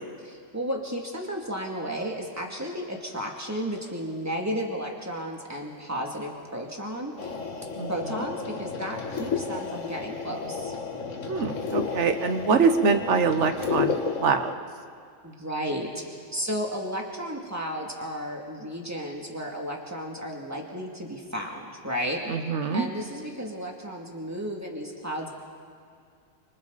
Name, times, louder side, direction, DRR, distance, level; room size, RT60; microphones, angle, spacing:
voice 1, 0.2-7.3 7.9-10.7 15.2-25.3, equal, 10° right, 0 dB, 2.5 m, -33 dB
sound 1, 7.2-14.5, left 5 dB, 70° left, 1.8 m, -32 dB
voice 2, 11.3-13.9 14.2-14.5 22.3-22.9, right 5 dB, 65° right, 8 dB, 1.3 m, -24 dB
29.5 x 25.0 x 4.1 m, 2.2 s
omnidirectional pair, 1.3 m